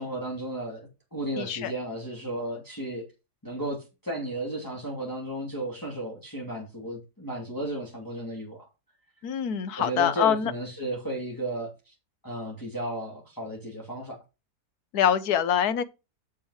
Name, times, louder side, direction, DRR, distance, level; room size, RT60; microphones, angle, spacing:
voice 1, 0.0-3.1 3.4-8.6 9.8-11.9 12.2-14.2, right 1 dB, 10° left, 2.6 m, -34 dB
voice 2, 1.4-1.7 9.2-10.5 14.9-15.8, left 9 dB, 70° left, 1.4 m, -24 dB
7.6 x 7.2 x 5.0 m
omnidirectional pair, 1.7 m